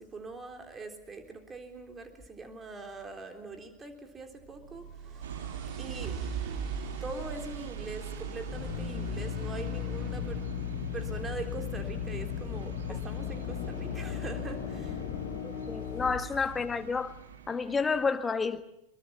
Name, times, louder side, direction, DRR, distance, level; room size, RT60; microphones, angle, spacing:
voice 1, 0.0-4.9 5.8-6.2 7.0-10.4 10.9-15.0, right 3 dB, 15° right, 5 dB, 3.7 m, -42 dB
sound 1, 4.4-10.5, right 5 dB, 40° right, 4.0 m, -41 dB
sound 2, 5.2-18.1, right 8 dB, 65° right, 2.2 m, -44 dB
Drill, 8.4-17.1, left 9 dB, 45° left, 4.2 m, -36 dB
voice 2, 15.4-17.1 17.5-18.6, left 5 dB, 15° left, 11 dB, 1.4 m, -30 dB
24.0 x 23.0 x 7.3 m, 0.83 s
figure-of-eight pair, 90°, 0 cm